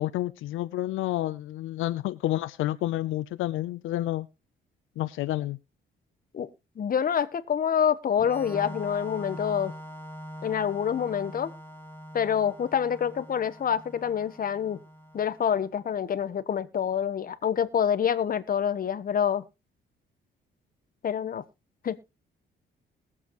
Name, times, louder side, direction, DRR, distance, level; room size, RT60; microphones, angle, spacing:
voice 1, 0.0-4.3 5.0-5.6, left 15 dB, 85° left, 12 dB, 0.6 m, -29 dB
voice 2, 6.8-9.7 10.4-11.5 12.1-14.8 15.1-19.4 21.0-21.4 21.8-22.0, left 8 dB, 45° left, 13 dB, 1.0 m, -27 dB
Organ, 8.2-15.7, equal, 10° left, 2.0 m, -43 dB
21.0 x 7.3 x 3.0 m, 0.27 s
cardioid pair, 90°, 20 cm